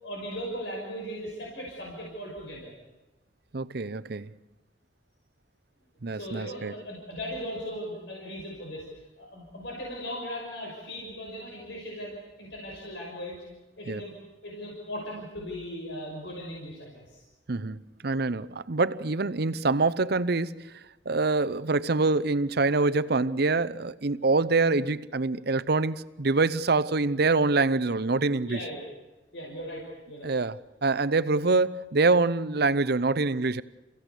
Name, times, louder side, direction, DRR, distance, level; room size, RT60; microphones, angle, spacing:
voice 1, 0.0-2.7 6.1-8.9 9.2-13.4 13.8-14.1 14.4-17.2 28.4-28.9 29.3-30.3, equal, 65° left, 6.0 m, -38 dB
voice 2, 3.5-4.3 6.0-6.7 13.9-14.0 17.5-28.6 30.2-33.6, right 3 dB, 55° right, 0.8 m, -25 dB
29.5 x 16.5 x 8.3 m
head